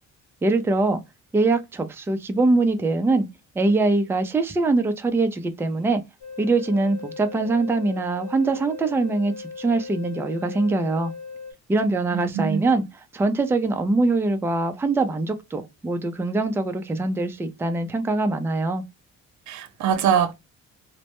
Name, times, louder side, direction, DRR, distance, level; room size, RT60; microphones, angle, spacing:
voice 1, 0.4-1.0 1.3-3.3 3.6-6.0 6.4-11.1 11.7-12.8 13.1-18.8, right 3 dB, 10° right, 0.4 m, -23 dB
sound 1, 6.2-11.5, left 5 dB, 55° left, 1.0 m, -38 dB
voice 2, 12.1-12.6 19.5-20.3, right 8 dB, 70° right, 0.5 m, -23 dB
2.1 x 2.0 x 2.8 m
cardioid pair, 90°, 30 cm